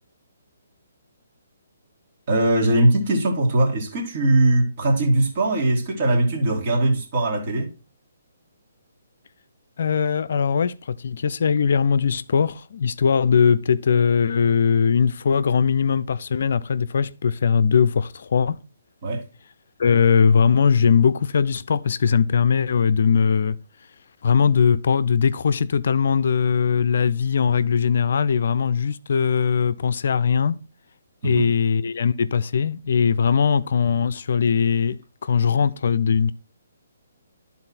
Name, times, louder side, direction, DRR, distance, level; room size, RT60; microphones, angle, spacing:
voice 1, 2.3-7.7 19.0-19.2 31.2-31.5, right 1 dB, 45° right, 2.3 m, -20 dB
voice 2, 9.8-18.6 19.8-23.6 24.2-30.6 31.2-36.3, left 6 dB, 60° left, 0.4 m, -20 dB
11.5 x 4.0 x 4.2 m
figure-of-eight pair, 140°, 0 cm